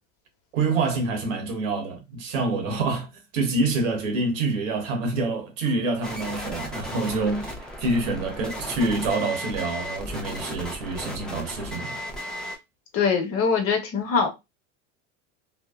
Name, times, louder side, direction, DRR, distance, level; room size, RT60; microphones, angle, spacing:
voice 1, 0.5-12.0, right 3 dB, 80° right, 1.0 m, -27 dB
sound 1, 6.0-12.6, equal, ahead, 0.6 m, -35 dB
voice 2, 12.9-14.3, left 5 dB, 35° left, 0.9 m, -22 dB
2.6 x 2.0 x 2.3 m
hypercardioid pair, 95°, 38 cm